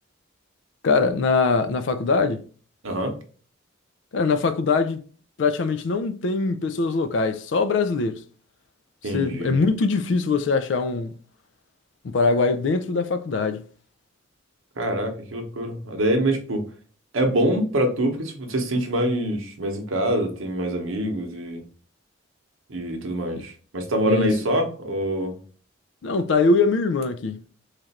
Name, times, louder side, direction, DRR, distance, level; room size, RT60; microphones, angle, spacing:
voice 1, 0.8-2.5 4.1-5.0 5.4-8.2 9.1-11.1 12.0-13.6 24.1-24.3 26.0-27.4, left 4 dB, 60° left, 0.4 m, -22 dB
voice 2, 2.8-3.2 9.0-9.6 14.8-16.7 17.1-21.6 22.7-25.4, right 1 dB, 80° right, 0.9 m, -25 dB
3.2 x 2.5 x 4.1 m
head